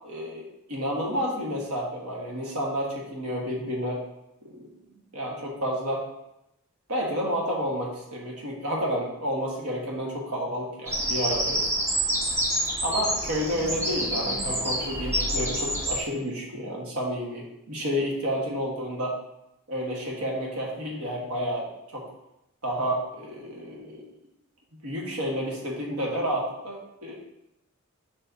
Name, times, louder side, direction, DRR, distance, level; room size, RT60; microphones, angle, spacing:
voice 1, 0.0-4.0 4.4-4.7 5.1-6.0 6.9-11.6 12.8-19.2 19.7-22.1 22.6-24.1 24.8-27.1, equal, 90° right, -2 dB, 1.6 m, -30 dB
Bird vocalization bird call bird song, 10.9-16.0, right 1 dB, 10° right, 0.9 m, -27 dB
6.7 x 5.5 x 2.8 m, 0.85 s
head